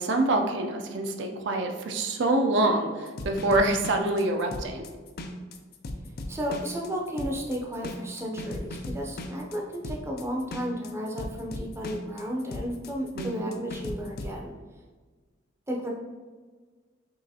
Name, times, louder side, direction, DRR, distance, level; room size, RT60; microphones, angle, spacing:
voice 1, 0.0-4.8 13.1-13.6, right 2 dB, 65° right, 4 dB, 0.4 m, -26 dB
sound 1, 3.1-14.4, left 1 dB, 55° left, 0.4 m, -37 dB
voice 2, 6.3-14.5 15.7-15.9, equal, 15° right, -1 dB, 0.5 m, -33 dB
5.4 x 3.0 x 2.8 m, 1.4 s
head